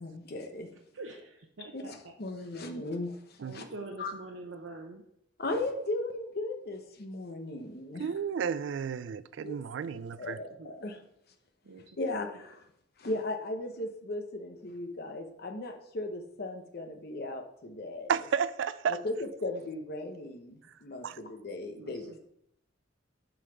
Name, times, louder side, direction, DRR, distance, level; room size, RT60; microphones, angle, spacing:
voice 1, 0.0-0.7 1.7-3.6 4.0-4.1 5.4-8.1 9.4-9.6 10.2-11.0 12.0-12.6 13.0-18.1 18.9-22.2, left 2 dB, 55° left, 0.8 m, -37 dB
voice 2, 0.9-2.1 3.4-5.0 10.6-10.7 11.6-11.8 12.1-12.2 21.8-22.2, right 2 dB, 90° right, 0.8 m, -45 dB
voice 3, 8.0-10.4 18.1-19.0 21.0-21.2, right 7 dB, 70° right, 0.3 m, -32 dB
7.7 x 4.0 x 5.8 m
head